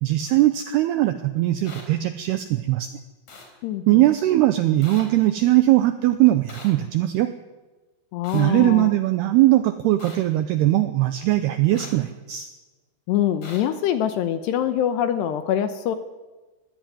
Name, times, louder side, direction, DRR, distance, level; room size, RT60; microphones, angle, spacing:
voice 1, 0.0-2.9 3.9-7.3 8.3-12.5, right 15 dB, 85° right, 10 dB, 2.3 m, -20 dB
sound 1, 1.6-1.8 3.3-3.5 4.8-5.0 6.5-6.7 8.2-8.4 10.0-10.2 11.7-11.9 13.4-13.6, left 3 dB, 40° left, 4.6 m, -41 dB
voice 2, 3.6-4.1 8.1-8.9 13.1-16.0, left 10 dB, 75° left, 9 dB, 2.7 m, -24 dB
21.0 x 15.5 x 9.3 m, 1.2 s
omnidirectional pair, 5.6 m